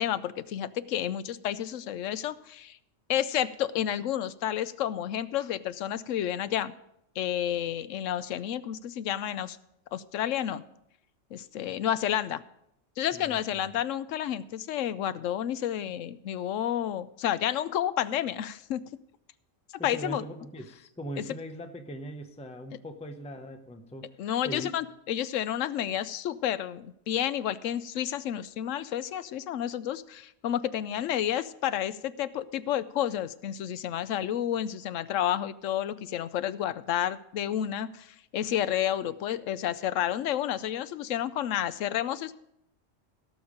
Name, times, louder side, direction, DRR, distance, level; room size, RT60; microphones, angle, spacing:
voice 1, 0.0-2.8 3.1-6.7 7.2-9.6 9.9-10.6 11.3-12.4 13.0-18.8 19.8-20.2 21.2-21.3 24.2-42.3, left 11 dB, 90° left, 15 dB, 1.0 m, -30 dB
voice 2, 13.1-13.7 19.8-24.1 24.4-24.7, equal, 5° left, 6 dB, 0.7 m, -40 dB
16.5 x 7.0 x 5.1 m, 0.77 s
omnidirectional pair, 1.3 m